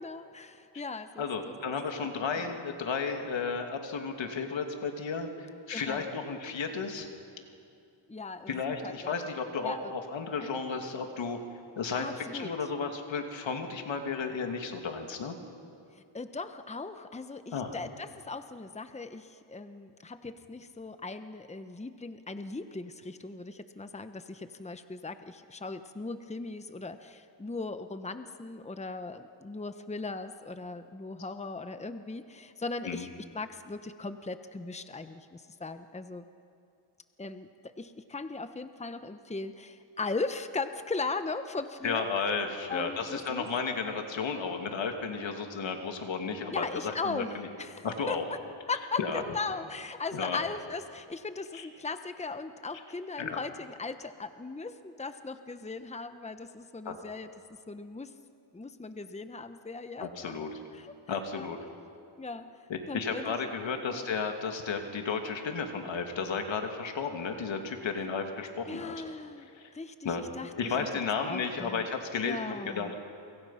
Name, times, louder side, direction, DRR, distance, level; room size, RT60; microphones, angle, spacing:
voice 1, 0.0-1.5 2.0-2.1 2.4-2.5 5.7-6.1 8.1-9.2 9.6-9.9 10.4-10.5 11.9-12.5 15.9-33.1 33.3-36.2 37.2-42.0 42.7-43.5 46.5-48.2 48.7-57.3 57.7-58.1 58.5-60.3 60.7-61.0 61.3-61.5 62.2-62.5 62.9-63.4 63.9-64.0 68.7-69.5 69.7-70.8 71.3-71.9 72.2-73.0, left 3 dB, 15° left, 9 dB, 1.1 m, -38 dB
voice 2, 1.2-7.1 8.5-11.4 11.8-12.1 12.3-15.4 17.5-17.8 32.8-33.0 41.8-47.5 47.8-48.2 49.0-49.2 50.1-50.4 51.5-51.7 53.2-53.4 56.8-56.9 60.0-60.6 61.1-61.6 62.7-68.9 69.5-69.7 70.0-70.2 70.6-72.4 72.7-73.0, left 5 dB, 75° left, 4 dB, 2.7 m, -33 dB
29.0 x 25.0 x 5.8 m, 2.5 s
cardioid pair, 75°, 46 cm